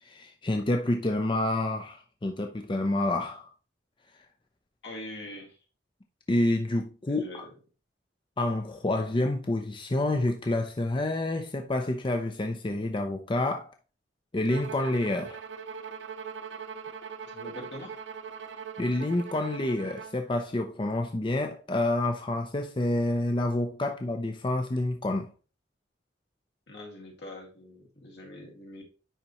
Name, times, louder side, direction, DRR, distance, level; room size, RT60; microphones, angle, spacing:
voice 1, 0.0-3.5 6.3-7.5 8.4-13.7 14.3-15.4 18.8-25.3, left 2 dB, 30° left, 0.6 m, -28 dB
voice 2, 4.8-5.6 7.1-7.5 17.3-18.0 26.7-28.8, left 1 dB, 70° left, 2.1 m, -43 dB
Bowed string instrument, 14.5-20.2, right 6 dB, 85° right, 0.5 m, -41 dB
10.0 x 4.1 x 3.0 m
head